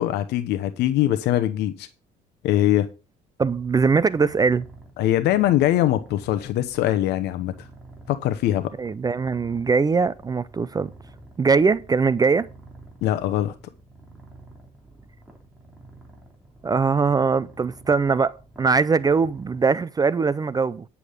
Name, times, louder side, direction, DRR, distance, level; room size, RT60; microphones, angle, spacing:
voice 1, 0.0-1.9 2.4-2.9 5.0-7.7 8.1-8.7 13.0-13.5, left 13 dB, 80° left, 0.8 m, -22 dB
Purr, 3.4-19.6, right 2 dB, 5° right, 3.3 m, -49 dB
voice 2, 3.4-4.7 8.8-10.9 11.4-12.5 16.6-20.8, right 5 dB, 20° right, 0.5 m, -21 dB
9.9 x 7.0 x 5.0 m
cardioid pair, 110°, 17 cm